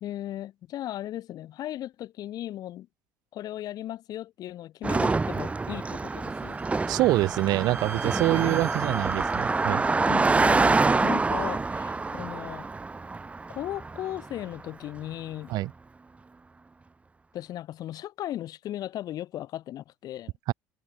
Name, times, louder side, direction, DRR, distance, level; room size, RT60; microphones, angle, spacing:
voice 1, 0.0-2.9 3.3-6.6 8.2-8.6 8.9-9.1 10.1-12.7 13.5-15.6 17.3-20.3, left 13 dB, 55° left, 2.3 m, -37 dB
Car passing by, 4.8-14.4, right 3 dB, 15° right, 0.5 m, -26 dB
Bowed string instrument, 6.1-9.7, right 13 dB, 85° right, 3.6 m, -44 dB
voice 2, 6.9-9.8 15.5-15.7 20.5-20.6, right 17 dB, 60° right, 0.6 m, -25 dB
hypercardioid pair, 70°, 8 cm